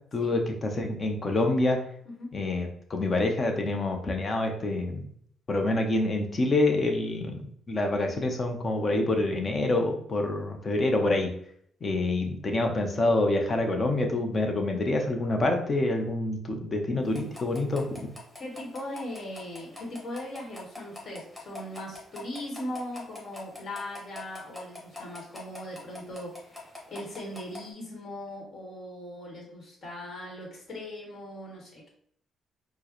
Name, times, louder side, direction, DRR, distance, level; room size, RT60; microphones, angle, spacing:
voice 1, 0.1-1.8 2.3-5.1 5.5-11.3 11.8-18.0, left 2 dB, 35° left, 3 dB, 0.8 m, -27 dB
voice 2, 2.0-2.4 18.4-31.9, left 1 dB, 55° left, -2 dB, 1.4 m, -39 dB
sound 1, 17.0-27.7, left 2 dB, 10° left, 1.3 m, -46 dB
4.4 x 2.1 x 3.0 m, 0.65 s
cardioid pair, 90°, 0 cm